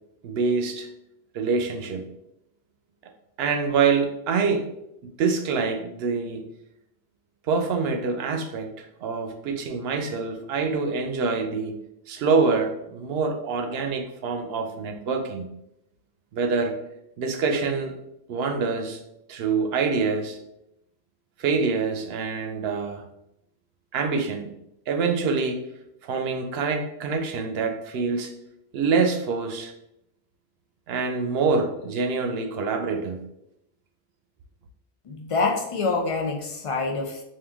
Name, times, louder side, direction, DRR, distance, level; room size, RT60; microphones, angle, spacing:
voice 1, 0.2-0.9 1.3-2.1 3.4-4.7 5.0-6.4 7.5-11.8 12.1-15.5 16.3-16.8 17.2-18.0 18.3-19.0 19.3-20.4 21.4-23.0 23.9-24.5 24.9-25.6 26.0-28.3 28.7-29.7 30.9-33.2, right 4 dB, 75° right, 5 dB, 0.8 m, -25 dB
voice 2, 35.1-37.2, left 3 dB, 55° left, 3 dB, 0.3 m, -26 dB
3.7 x 2.6 x 3.4 m, 0.83 s
omnidirectional pair, 1.1 m